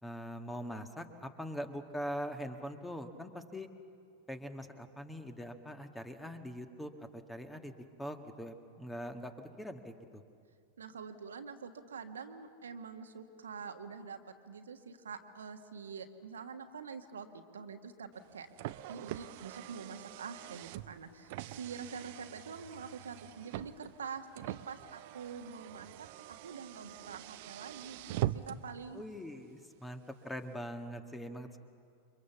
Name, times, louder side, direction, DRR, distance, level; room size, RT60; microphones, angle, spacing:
voice 1, 0.0-3.7 4.3-7.7 8.0-9.3 9.6-10.2 28.9-31.6, equal, 5° left, 7 dB, 1.8 m, -42 dB
voice 2, 10.8-14.2 14.5-18.5 18.9-26.1 26.4-29.0, right 6 dB, 70° right, 6 dB, 1.5 m, -46 dB
Car, 18.1-28.8, right 15 dB, 50° right, 0.7 m, -43 dB
29.0 x 24.5 x 7.2 m, 2.3 s
figure-of-eight pair, 90°, 0 cm